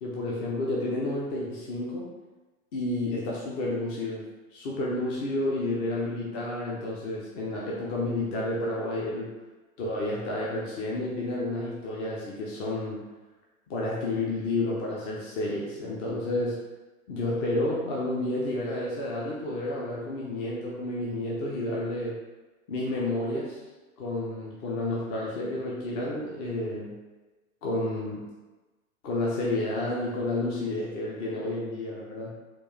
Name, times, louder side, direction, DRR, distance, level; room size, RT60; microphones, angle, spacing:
voice 1, 0.0-2.1 2.7-4.3 4.5-9.3 9.8-13.0 13.7-16.6 17.1-22.2 22.7-23.6 24.0-27.0 27.6-28.2 29.0-32.3, left 2 dB, 25° left, -4 dB, 0.6 m, -30 dB
4.4 x 2.5 x 3.0 m, 1.2 s
figure-of-eight pair, 100°, 43 cm